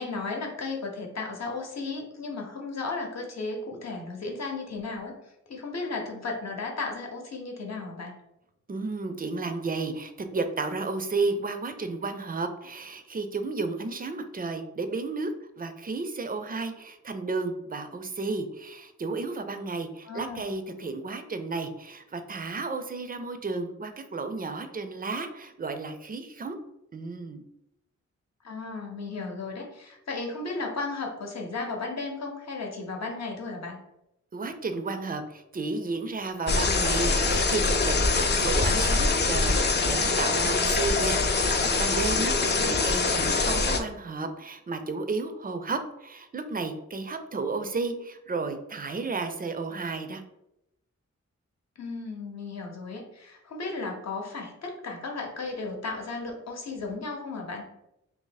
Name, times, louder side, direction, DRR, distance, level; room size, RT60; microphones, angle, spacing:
voice 1, 0.0-5.2 5.5-8.1 20.1-20.4 28.4-33.8 42.6-42.9 51.8-57.7, left 3 dB, 65° left, 1 dB, 0.8 m, -35 dB
voice 2, 8.7-15.3 15.6-26.6 26.9-27.4 34.3-50.2, right 3 dB, 30° right, 8 dB, 0.4 m, -33 dB
sound 1, 36.5-43.8, left 3 dB, 35° left, 0.4 m, -24 dB
2.8 x 2.6 x 3.9 m, 0.86 s
wide cardioid pair, 105°, 29 cm